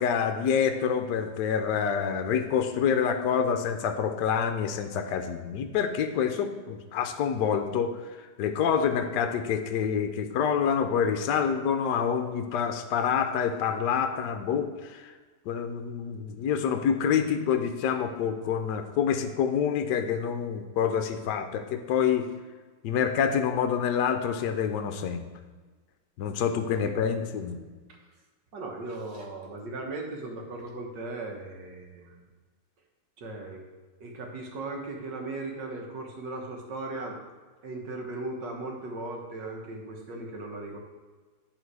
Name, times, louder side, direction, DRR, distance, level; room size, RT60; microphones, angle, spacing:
voice 1, 0.0-15.1 15.5-22.3 22.8-25.3 26.2-27.6, left 7 dB, 70° left, 6 dB, 1.2 m, -27 dB
voice 2, 26.8-27.2 28.5-32.2 33.2-33.6 34.0-37.2 37.6-40.8, right 2 dB, 65° right, 1 dB, 1.8 m, -37 dB
10.5 x 3.9 x 4.7 m, 1.4 s
omnidirectional pair, 2.1 m